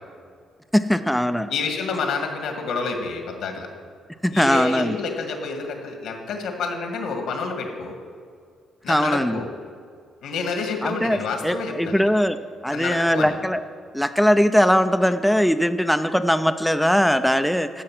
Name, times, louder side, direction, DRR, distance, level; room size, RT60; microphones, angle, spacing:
voice 1, 0.7-1.5 4.2-5.0 8.9-9.4 10.8-12.4 12.6-13.6 13.9-17.8, equal, ahead, 9 dB, 0.4 m, -20 dB
voice 2, 1.5-3.7 4.3-8.0 8.8-9.5 10.2-12.1 12.7-13.3, left 4 dB, 80° left, 4 dB, 1.9 m, -28 dB
12.0 x 7.6 x 6.0 m, 2.1 s
cardioid pair, 90°, 0 cm